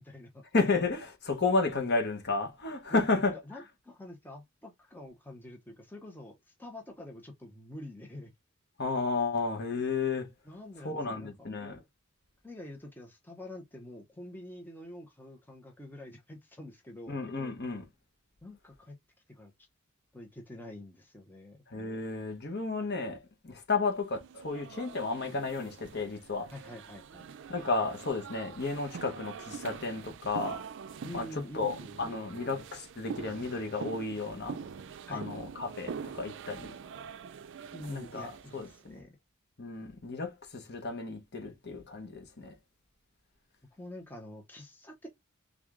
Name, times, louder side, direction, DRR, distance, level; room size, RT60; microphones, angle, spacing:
voice 1, 0.0-0.4 2.9-8.3 10.5-11.5 12.4-17.2 18.4-19.0 19.3-19.7 20.1-21.6 26.5-27.3 31.0-32.2 35.1-35.3 37.7-39.1 43.7-45.1, left 1 dB, 10° left, 0.8 m, -46 dB
voice 2, 0.5-3.4 8.8-10.3 10.8-11.8 17.1-17.9 21.7-26.5 27.5-30.6 31.1-34.6 35.1-36.8 37.9-39.0 39.6-42.6, left 3 dB, 50° left, 1.1 m, -32 dB
sound 1, 24.1-38.8, right 6 dB, 55° right, 0.4 m, -44 dB
3.6 x 3.3 x 3.6 m
head